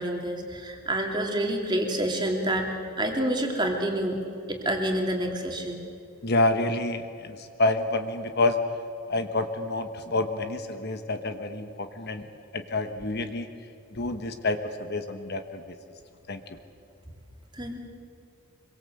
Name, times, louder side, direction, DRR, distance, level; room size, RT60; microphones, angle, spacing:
voice 1, 0.0-4.2 4.5-5.8 17.5-17.8, right 1 dB, 20° right, 1 dB, 2.9 m, -28 dB
voice 2, 6.2-8.6 9.1-12.3 12.5-13.5 13.9-15.8 16.3-16.4, left 2 dB, 45° left, 7 dB, 1.3 m, -28 dB
26.0 x 23.5 x 7.9 m, 2.5 s
head